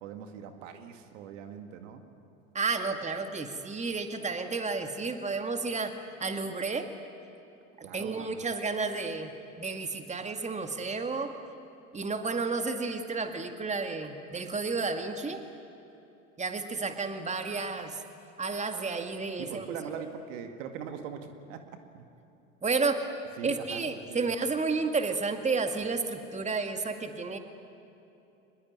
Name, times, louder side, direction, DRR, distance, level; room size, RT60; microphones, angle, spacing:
voice 1, 0.0-2.0 7.8-8.5 19.4-21.6 21.9-22.1 23.4-23.8 24.1-24.3, right 7 dB, 70° right, 6 dB, 2.2 m, -41 dB
voice 2, 2.5-5.9 6.2-6.9 7.8-9.3 9.6-11.3 11.9-15.4 16.4-18.0 18.4-19.7 22.6-23.1 23.4-27.4, right 4 dB, 15° right, 6 dB, 2.2 m, -31 dB
25.0 x 21.0 x 9.7 m, 2.9 s
hypercardioid pair, 75°, 40 cm